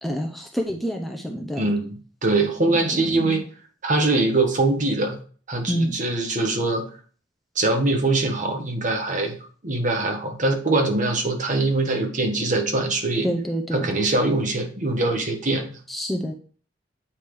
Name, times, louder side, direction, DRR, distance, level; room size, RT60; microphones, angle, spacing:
voice 1, 0.0-1.6 2.7-3.4 5.7-5.9 13.2-13.9 15.9-16.3, equal, ahead, 1 dB, 0.7 m, -27 dB
voice 2, 1.6-3.4 3.8-5.2 5.5-6.8 7.5-9.4 9.6-13.3 13.7-15.7, right 2 dB, 40° right, 4 dB, 1.5 m, -23 dB
8.5 x 5.0 x 3.5 m, 0.41 s
head